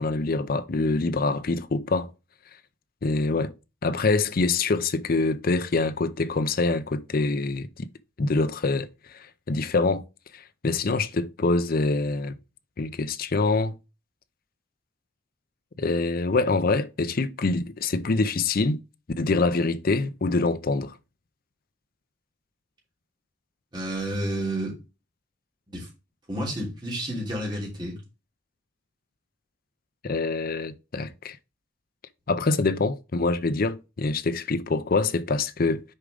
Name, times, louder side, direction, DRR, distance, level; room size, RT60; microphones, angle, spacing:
voice 1, 0.0-2.1 3.0-3.5 3.8-7.9 8.2-8.9 9.1-10.0 10.3-12.3 12.8-13.8 15.8-18.8 19.2-20.9 30.0-31.4 32.3-35.8, left 3 dB, 45° left, 0.5 m, -25 dB
voice 2, 23.7-24.8 25.7-25.9 26.3-28.0, right 1 dB, 25° right, 3.2 m, -30 dB
6.6 x 4.9 x 3.8 m
head